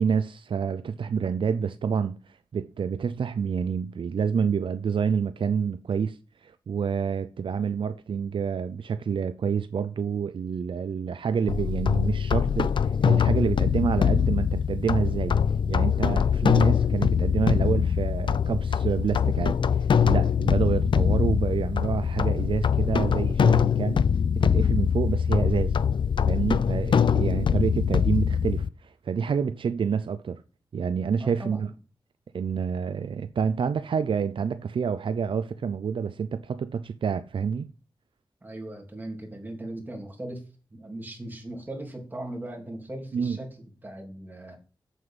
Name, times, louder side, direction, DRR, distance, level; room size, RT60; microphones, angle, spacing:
voice 1, 0.0-15.4 15.7-24.1 24.3-25.8 26.3-30.4 30.7-31.7 32.3-37.7 43.1-43.4, right 6 dB, 80° right, 0.5 m, -28 dB
sound 1, 11.5-28.7, left 7 dB, 70° left, 0.4 m, -23 dB
voice 2, 31.2-31.7 38.4-40.4 40.7-44.6, right 1 dB, 20° right, 3.2 m, -39 dB
8.3 x 7.9 x 5.6 m
wide cardioid pair, 125°, 9 cm